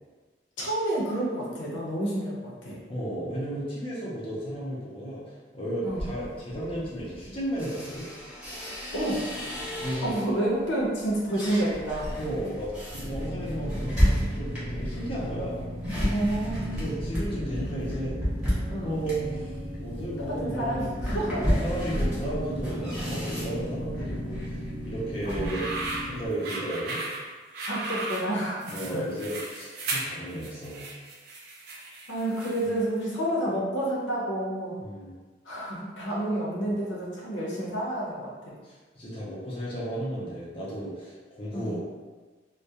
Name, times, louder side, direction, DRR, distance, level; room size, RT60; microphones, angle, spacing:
voice 1, 0.6-2.8 5.8-6.1 8.9-9.2 10.0-12.1 16.1-17.0 18.7-18.9 20.2-21.6 25.3-25.9 27.7-29.0 32.1-34.8 35.4-38.3 41.5-41.7, right 1 dB, 85° left, -5 dB, 0.7 m, -29 dB
voice 2, 2.9-5.2 5.5-8.1 9.8-10.2 12.2-12.7 13.0-15.6 16.7-18.2 18.8-21.0 21.3-25.6 26.0-27.0 28.7-30.9 34.8-35.1 38.6-41.8, right 1 dB, 30° left, -7 dB, 0.5 m, -34 dB
sound 1, 5.9-10.4 10.8-25.6, equal, 5° right, 0.8 m, -32 dB
sound 2, 12.9-26.3, equal, 80° right, 0.7 m, -36 dB
sound 3, 25.2-32.8, right 2 dB, 60° right, 0.4 m, -36 dB
2.3 x 2.1 x 2.7 m, 1.3 s
head